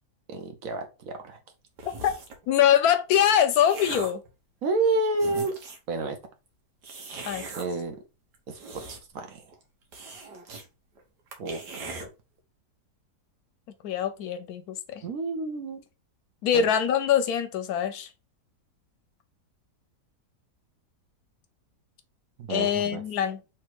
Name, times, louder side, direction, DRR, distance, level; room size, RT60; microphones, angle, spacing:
voice 1, 0.3-1.4 4.6-5.5 5.9-6.2 7.5-7.9 8.5-8.6 8.9-9.4 11.4-12.1 15.0-15.8 16.5-16.7 22.4-23.0, right 3 dB, 60° right, 1.1 m, -30 dB
sound 1, 1.8-2.5 3.1-4.3 4.8-4.9 5.1-5.9 6.8-7.7 8.3-9.2 9.5-9.6 9.9-10.7 11.0-11.1 11.3-12.1, right 3 dB, 85° right, 1.5 m, -40 dB
voice 2, 2.5-4.2 7.3-7.4 13.8-15.0 16.4-18.1 22.5-23.4, left 9 dB, 70° left, 1.0 m, -23 dB
3.4 x 3.1 x 4.6 m
omnidirectional pair, 1.8 m